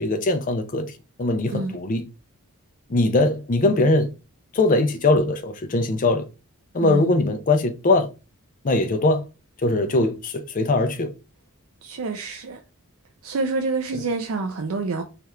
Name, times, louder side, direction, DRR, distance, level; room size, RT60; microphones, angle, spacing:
voice 1, 0.0-2.0 2.9-4.1 4.5-6.2 6.7-8.1 8.6-9.2 9.6-11.1, left 2 dB, 35° left, 0.4 m, -21 dB
voice 2, 6.8-7.1 11.8-12.6 13.2-15.0, right 3 dB, 70° right, 0.5 m, -27 dB
3.3 x 2.4 x 4.2 m
head